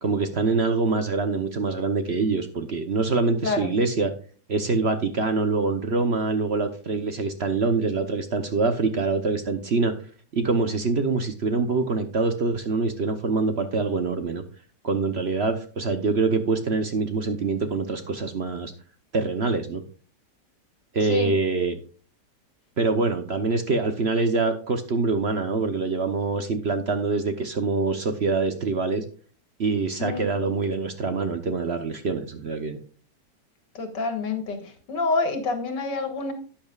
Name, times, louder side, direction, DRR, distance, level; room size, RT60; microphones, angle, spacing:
voice 1, 0.0-4.1 4.5-9.9 10.3-14.4 14.8-18.7 19.1-19.8 20.9-21.7 22.8-29.0 29.6-32.8, right 4 dB, 50° right, 8 dB, 0.9 m, -25 dB
voice 2, 21.0-21.3 30.0-30.3 33.7-36.3, left 3 dB, 90° left, 7 dB, 2.3 m, -27 dB
12.0 x 8.7 x 2.4 m, 0.40 s
omnidirectional pair, 1.9 m